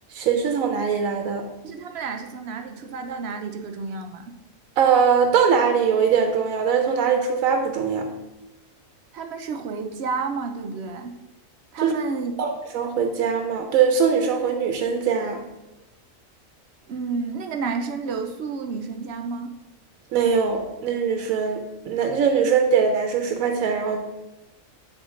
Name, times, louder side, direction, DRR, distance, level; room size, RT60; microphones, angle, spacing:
voice 1, 0.1-1.4 4.8-8.1 11.8-11.9 12.4-15.4 20.1-21.6 21.9-24.0, right 6 dB, 85° right, 4 dB, 1.0 m, -21 dB
voice 2, 1.6-4.2 9.1-11.1 11.7-12.3 16.9-19.5, right 4 dB, 60° right, 5 dB, 0.8 m, -30 dB
7.8 x 3.5 x 3.7 m, 0.99 s
omnidirectional pair, 1.4 m